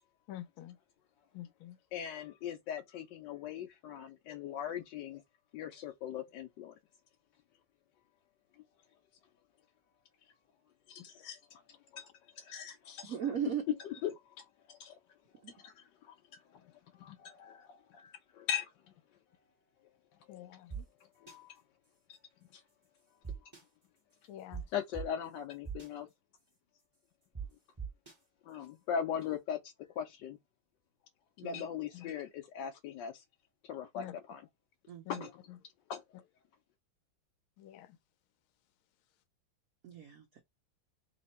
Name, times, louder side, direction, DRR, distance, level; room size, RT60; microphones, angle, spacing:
voice 1, 0.3-0.7 1.3-1.7 20.3-20.8 24.3-24.6 31.9-32.0 34.0-34.1 35.1-35.2 37.6-37.9, left 13 dB, 90° left, 1.5 m, -47 dB
voice 2, 1.9-5.2 5.5-6.7 10.9-12.1 12.3-13.2 13.8-15.0 15.3-18.7 20.3-20.5 21.2-21.6 22.5-22.6 24.7-26.1 28.4-30.4 31.4-33.2 33.6-34.5 35.1-35.4 35.9-36.3, left 8 dB, 70° left, 1.2 m, -40 dB
voice 3, 13.1-13.6 15.4-15.5 31.4-31.6 34.9-35.3 39.8-40.4, right 9 dB, 70° right, 0.8 m, -37 dB
sound 1, 20.7-20.8 21.3-21.4 23.2-23.6 24.5-24.6 24.9-25.0 25.6-25.9 27.3-27.4 27.8-28.1, right 6 dB, 20° right, 0.7 m, -40 dB
3.4 x 2.9 x 4.2 m
omnidirectional pair, 2.2 m